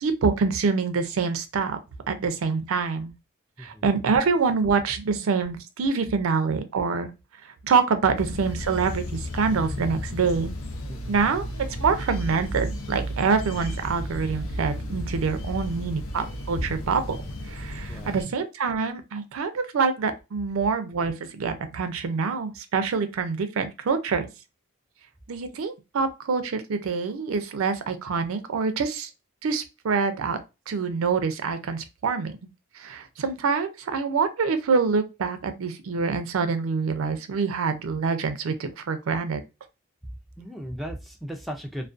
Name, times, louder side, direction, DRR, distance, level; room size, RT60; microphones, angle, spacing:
voice 1, 0.0-1.8 2.1-3.1 3.6-7.1 7.6-10.5 11.1-11.5 11.8-17.2 17.5-24.3 25.3-29.1 29.4-30.4 30.7-32.3 32.8-39.4, right 5 dB, 80° right, 0.4 m, -26 dB
sound 1, 8.2-18.2, equal, 80° left, 0.5 m, -33 dB
voice 2, 10.9-11.2 17.9-18.3 40.4-41.9, equal, ahead, 0.3 m, -37 dB
2.4 x 2.2 x 2.4 m
head